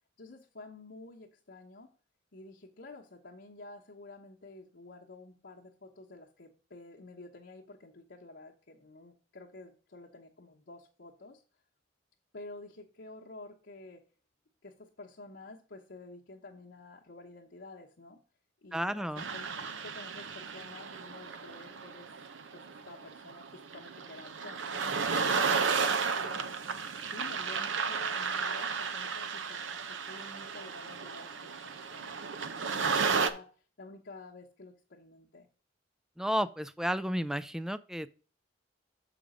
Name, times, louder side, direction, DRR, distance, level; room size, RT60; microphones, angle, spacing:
voice 1, 0.2-1.9 2.3-11.4 12.3-14.0 14.6-18.2 18.6-22.1 22.5-24.9 25.3-26.5 27.1-33.5 33.8-35.5, left 2 dB, 65° left, -3 dB, 1.0 m, -50 dB
voice 2, 18.7-19.2 36.2-38.1, equal, 5° right, 14 dB, 0.3 m, -32 dB
sound 1, 19.2-33.3, right 5 dB, 85° right, 0.7 m, -33 dB
6.8 x 5.1 x 5.0 m, 0.39 s
head